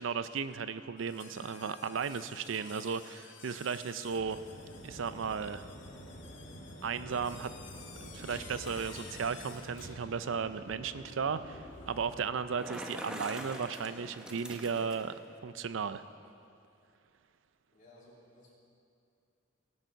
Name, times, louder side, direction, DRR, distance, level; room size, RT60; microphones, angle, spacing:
voice 1, 0.0-4.4 4.8-5.7 6.8-7.5 8.1-15.1 15.4-16.0, right 6 dB, 80° right, 13 dB, 0.5 m, -35 dB
sound 1, 1.0-9.8, left 6 dB, 65° left, 1.1 m, -53 dB
sound 2, 4.1-12.3, equal, 90° left, 2.4 m, -48 dB
Bicycle, 12.3-15.2, right 1 dB, 5° right, 0.8 m, -44 dB
voice 2, 17.7-18.6, left 1 dB, 45° left, -6 dB, 3.3 m, -58 dB
18.0 x 6.6 x 5.8 m, 2.6 s
head